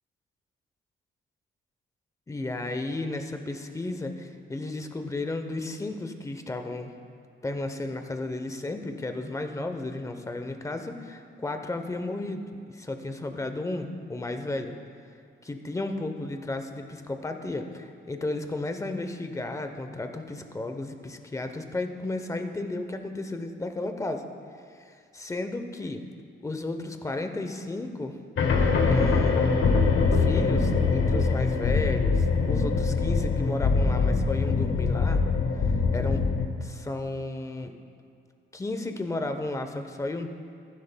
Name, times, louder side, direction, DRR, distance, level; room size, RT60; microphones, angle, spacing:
voice 1, 2.3-6.9 7.4-14.8 15.4-24.3 24.8-26.0 26.4-28.2 28.9-29.5 30.1-35.2 35.9-36.3 36.6-37.7 38.5-40.3, left 2 dB, 15° left, 6 dB, 0.7 m, -33 dB
sound 1, 28.4-36.5, left 4 dB, 70° left, 1.1 m, -23 dB
15.0 x 11.0 x 2.2 m, 2.3 s
cardioid pair, 120°, 21 cm